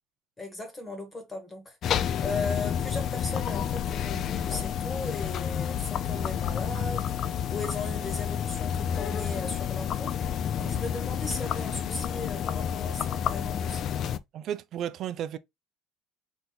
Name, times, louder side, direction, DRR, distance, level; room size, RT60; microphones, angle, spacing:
voice 1, 0.4-10.2 10.6-13.8, left 2 dB, 15° left, 1.3 m, -37 dB
sound 1, 1.8-14.2, left 8 dB, 45° left, 0.4 m, -30 dB
voice 2, 14.3-15.4, right 10 dB, 45° right, 0.4 m, -34 dB
4.3 x 2.6 x 3.9 m
cardioid pair, 145°, 0 cm